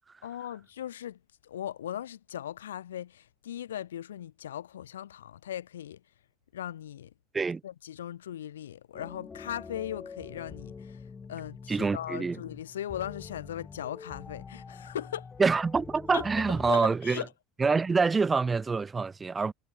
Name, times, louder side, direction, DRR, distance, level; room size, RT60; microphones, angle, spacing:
voice 1, 0.2-6.0 6.5-7.1 7.6-11.0 11.3-15.3 16.1-16.2 16.7-17.3, left 11 dB, 75° left, 1.9 m, -38 dB
sound 1, 8.9-16.7, left 5 dB, 25° left, 0.8 m, -45 dB
voice 2, 11.7-12.4 15.4-17.2 17.6-19.5, right 4 dB, 20° right, 0.6 m, -26 dB
figure-of-eight pair, 70°, 0 cm